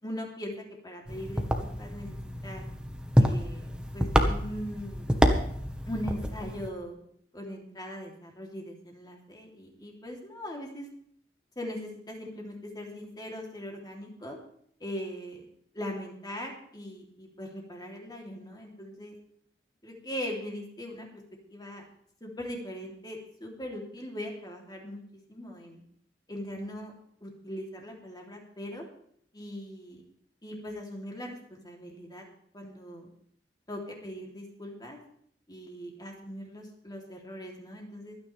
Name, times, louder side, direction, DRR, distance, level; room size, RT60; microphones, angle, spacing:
voice 1, 0.0-2.6 3.2-3.6 3.9-5.2 5.9-7.0 7.3-10.9 11.5-14.4 14.8-15.4 15.7-19.1 19.8-21.2 21.5-21.8 22.2-25.8 26.3-26.9 27.2-28.9 29.3-30.0 30.4-32.2 32.5-33.1 33.7-35.0 35.5-38.2, equal, 25° left, 0 dB, 3.1 m, -40 dB
sound 1, 1.1-6.7, equal, 5° right, 1.3 m, -28 dB
25.0 x 9.8 x 3.4 m, 0.64 s
head